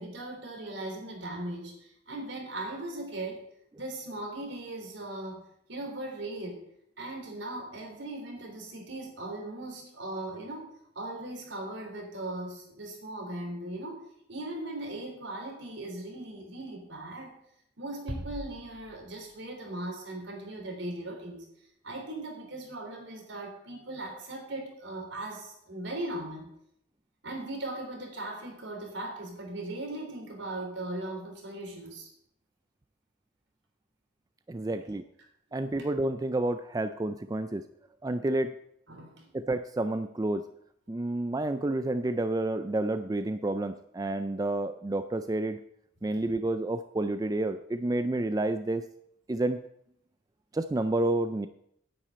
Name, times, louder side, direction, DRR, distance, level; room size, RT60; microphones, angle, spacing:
voice 1, 0.0-3.4 3.8-5.4 5.7-6.6 7.0-10.7 11.0-14.0 14.3-17.4 17.8-21.5 21.8-26.5 27.2-32.1 34.7-34.9 38.9-39.3, right 1 dB, 70° right, 1 dB, 3.6 m, -38 dB
Bass drum, 18.1-19.5, equal, 90° right, 2.5 m, -41 dB
voice 2, 34.5-35.0 35.5-37.6 38.0-38.5 39.3-40.4 40.9-45.6 46.0-48.8 49.3-49.6 50.5-51.5, right 2 dB, 20° right, 10 dB, 0.3 m, -29 dB
9.7 x 6.1 x 8.7 m, 0.74 s
head